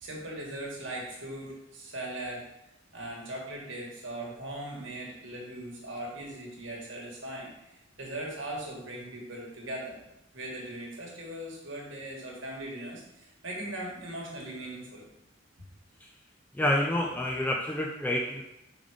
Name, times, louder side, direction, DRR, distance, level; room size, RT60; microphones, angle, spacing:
voice 1, 0.0-2.4 2.9-10.0 10.3-15.0, right 1 dB, 60° right, -2 dB, 1.5 m, -39 dB
voice 2, 16.5-18.4, left 1 dB, 10° left, 1 dB, 0.3 m, -28 dB
5.2 x 3.8 x 4.9 m, 0.88 s
head